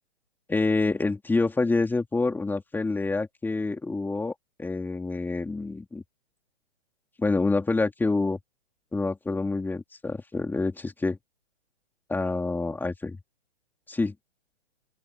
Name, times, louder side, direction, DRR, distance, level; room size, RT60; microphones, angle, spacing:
voice 1, 0.5-4.3 4.6-6.0 7.2-8.4 8.9-11.2 12.1-13.2 13.9-14.1, left 3 dB, 5° left, 3.4 m, -27 dB
open air
hypercardioid pair, 140°, 33 cm